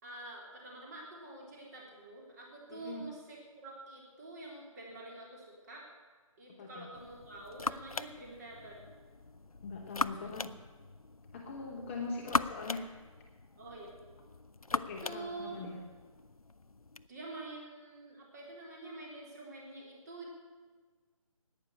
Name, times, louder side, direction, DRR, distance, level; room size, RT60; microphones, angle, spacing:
voice 1, 0.0-5.8 6.4-8.8 10.0-10.2 13.6-13.9 14.7-15.6 17.1-20.4, right 2 dB, 30° right, -2 dB, 3.7 m, -47 dB
voice 2, 2.7-3.1 6.6-6.9 9.6-10.5 11.3-12.9 14.7-15.8, left 3 dB, 20° left, 0 dB, 1.3 m, -41 dB
sound 1, 6.9-17.1, left 3 dB, 90° left, 0.6 m, -40 dB
12.0 x 9.3 x 9.7 m, 1.5 s
figure-of-eight pair, 150°, 18 cm